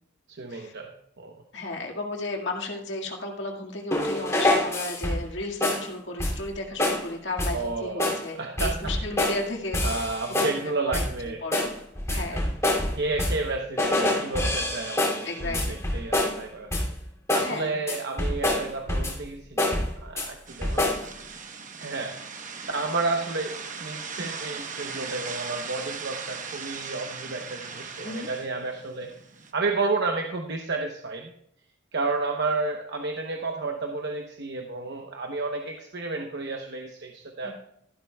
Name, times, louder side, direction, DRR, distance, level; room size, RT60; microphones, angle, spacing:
voice 1, 0.3-1.4 7.5-8.9 9.8-11.4 12.1-12.4 12.9-15.6 15.9-16.7 17.3-20.9 21.8-22.2 22.7-29.1 29.5-31.3 31.9-37.5, right 3 dB, 65° right, 3 dB, 0.9 m, -31 dB
voice 2, 1.5-10.5 10.8-11.0 11.4-11.7 12.1-12.5 14.9-15.8 17.4-17.8 28.0-28.3 37.4-37.5, left 2 dB, 75° left, 0 dB, 2.0 m, -34 dB
sound 1, 3.9-5.3 5.6-5.9 6.2-6.5 6.8-7.1 7.4-7.7 8.0-8.3 8.6-9.4 9.7-10.6 10.9-11.2 11.5-13.5 13.8-16.4 16.7-17.0 17.3-17.6 17.9-19.3 19.6-20.3 20.6-21.1, left 1 dB, 15° left, 2.8 m, -26 dB
sound 2, 20.5-29.5, right 5 dB, 45° right, 1.1 m, -38 dB
13.5 x 12.0 x 2.3 m, 0.73 s
head